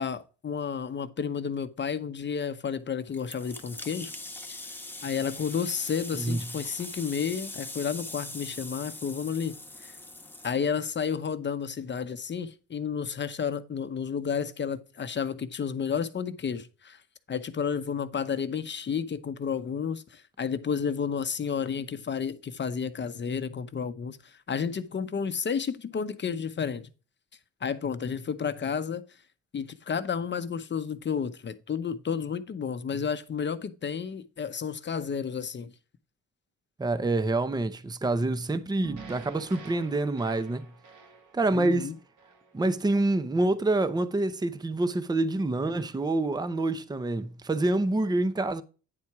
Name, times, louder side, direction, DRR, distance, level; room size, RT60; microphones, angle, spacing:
voice 1, 0.0-4.1 4.5-4.6 5.0-9.5 9.8-9.9 10.4-17.0 17.3-26.9 27.6-29.0 29.5-35.7 41.5-42.0, left 6 dB, 35° left, 0.8 m, -31 dB
sound 1, 3.1-10.5, left 2 dB, 5° left, 1.3 m, -41 dB
voice 2, 36.8-40.7 41.3-41.9 42.5-48.6, right 2 dB, 15° right, 0.7 m, -27 dB
sound 2, 38.8-43.1, right 5 dB, 80° right, 2.1 m, -47 dB
9.6 x 4.3 x 4.7 m
cardioid pair, 90°, 30 cm